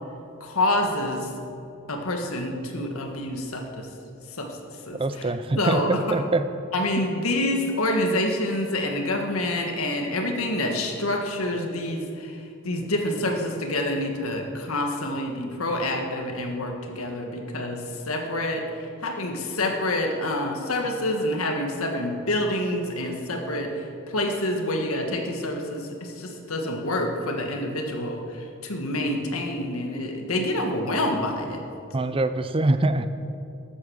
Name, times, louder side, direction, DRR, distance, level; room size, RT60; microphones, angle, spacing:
voice 1, 0.4-1.3 1.9-3.9 4.4-4.6 4.9-5.3 5.6-6.1 6.7-31.6, left 1 dB, 80° left, 3 dB, 1.7 m, -27 dB
voice 2, 5.0-6.4 31.9-33.1, right 2 dB, 25° right, 11 dB, 0.5 m, -24 dB
13.0 x 8.7 x 6.5 m, 2.6 s
head